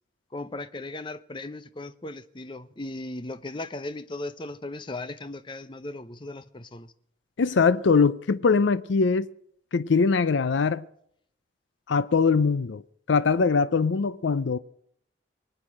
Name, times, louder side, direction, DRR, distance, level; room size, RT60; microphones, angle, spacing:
voice 1, 0.3-6.9, left 2 dB, 25° left, 0.7 m, -37 dB
voice 2, 7.4-9.3 9.7-10.8 11.9-12.8 13.1-14.6, left 5 dB, 85° left, 0.5 m, -22 dB
23.0 x 9.0 x 6.3 m
head